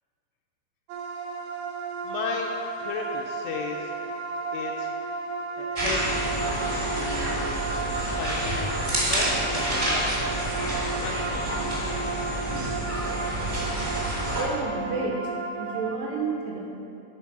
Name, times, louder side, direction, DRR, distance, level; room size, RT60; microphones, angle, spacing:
sound 1, 0.9-16.0, right 3 dB, 90° right, 3.2 m, -33 dB
voice 1, 2.0-4.0 4.5-4.9 5.6-6.3 6.9-7.6 8.1-8.8 9.1-10.5 11.0-11.5, left 5 dB, 80° left, 0 dB, 2.5 m, -35 dB
sound 2, 5.7-14.4, right 1 dB, 30° right, 0.7 m, -28 dB
voice 2, 14.3-16.7, right 3 dB, 75° right, -2 dB, 2.9 m, -31 dB
13.5 x 4.5 x 5.9 m, 2.7 s
omnidirectional pair, 5.2 m